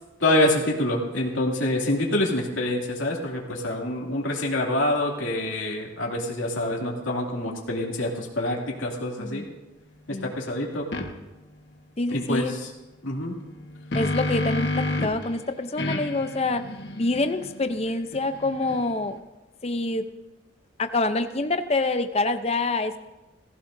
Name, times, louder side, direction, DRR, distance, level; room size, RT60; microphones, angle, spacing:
voice 1, 0.2-9.4 10.1-10.9 12.1-12.7 13.0-13.4, left 1 dB, 85° left, -2 dB, 2.7 m, -26 dB
sound 1, 10.9-11.1 13.5-15.3 15.8-19.1, left 2 dB, 60° left, 1.4 m, -30 dB
voice 2, 12.0-12.5 13.9-16.7 17.0-19.2 19.6-20.0 20.8-23.0, left 2 dB, 30° left, 9 dB, 0.6 m, -26 dB
19.0 x 15.5 x 2.7 m, 1.1 s
head